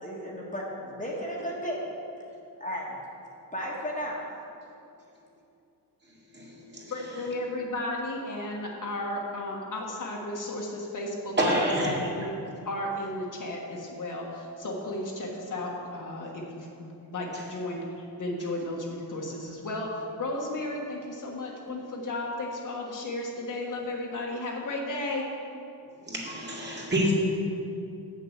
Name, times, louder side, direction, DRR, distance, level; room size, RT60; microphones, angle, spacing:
voice 1, 0.0-1.8 2.6-3.0 3.5-4.2, equal, 20° left, -4 dB, 1.5 m, -34 dB
voice 2, 6.3-6.9 11.4-11.9 26.1-27.1, right 1 dB, 25° right, -4 dB, 2.2 m, -27 dB
voice 3, 6.9-12.4 12.6-25.3, left 1 dB, 45° left, -2 dB, 1.5 m, -34 dB
7.8 x 6.8 x 6.5 m, 2.7 s
cardioid pair, 110°, 41 cm